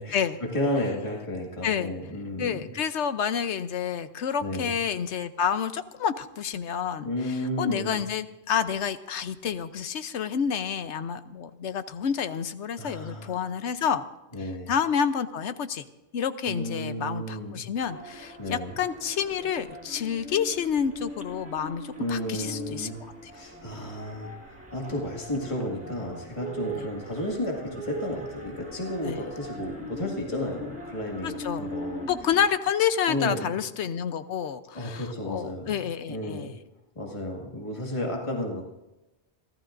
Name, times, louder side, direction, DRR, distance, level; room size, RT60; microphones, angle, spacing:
voice 1, 0.0-2.7 4.4-4.8 7.0-8.1 12.8-13.5 14.3-14.7 16.4-17.7 18.4-18.8 22.0-23.0 23.3-32.1 33.1-33.6 34.7-36.5 37.0-38.7, left 1 dB, 25° left, -1 dB, 2.0 m, -32 dB
voice 2, 1.6-1.9 2.4-7.1 7.6-14.0 14.7-15.8 16.1-22.9 29.0-29.2 31.2-31.7 32.1-36.5, left 7 dB, 80° left, 11 dB, 1.1 m, -29 dB
sound 1, 17.8-32.5, right 1 dB, 10° right, 1.7 m, -41 dB
29.0 x 13.0 x 2.6 m, 1.0 s
omnidirectional pair, 1.2 m